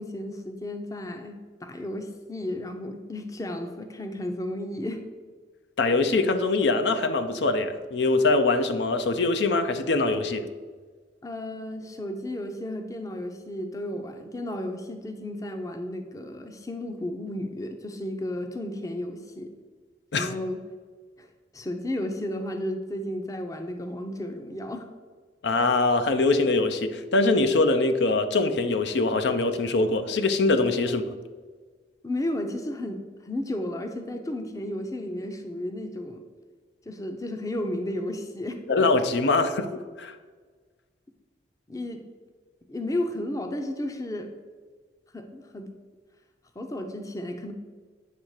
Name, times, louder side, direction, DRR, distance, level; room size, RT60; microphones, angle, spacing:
voice 1, 0.0-5.0 11.2-19.5 20.1-20.6 21.2-21.3 21.5-24.9 30.8-31.2 32.0-36.3 36.9-38.6 41.7-42.0 42.7-44.3 45.1-45.7 46.6-47.5, left 1 dB, 20° left, 5 dB, 0.6 m, -33 dB
voice 2, 5.8-10.5 20.1-20.3 25.4-31.1 38.7-39.7 40.0-40.2, left 3 dB, 70° left, 8 dB, 0.6 m, -23 dB
9.1 x 3.5 x 6.4 m, 1.5 s
head